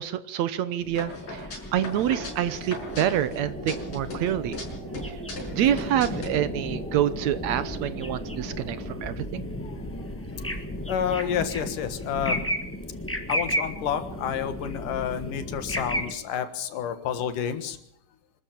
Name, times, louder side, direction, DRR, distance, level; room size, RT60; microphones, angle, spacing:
voice 1, 0.0-1.4 1.7-4.6 5.5-9.5, right 11 dB, 70° right, 14 dB, 2.0 m, -27 dB
sound 1, 0.8-16.1, equal, 5° left, 1.2 m, -34 dB
sound 2, 1.0-3.4 3.7-4.7 4.9-6.3, left 2 dB, 60° left, 7.0 m, -38 dB
sound 3, 1.8-9.0, right 3 dB, 85° right, 4.2 m, -42 dB
voice 2, 9.6-10.1 10.4-10.6 10.9-12.4 13.3-17.8, left 8 dB, 85° left, 9 dB, 3.1 m, -30 dB
25.5 x 14.0 x 7.5 m, 0.72 s
omnidirectional pair, 3.6 m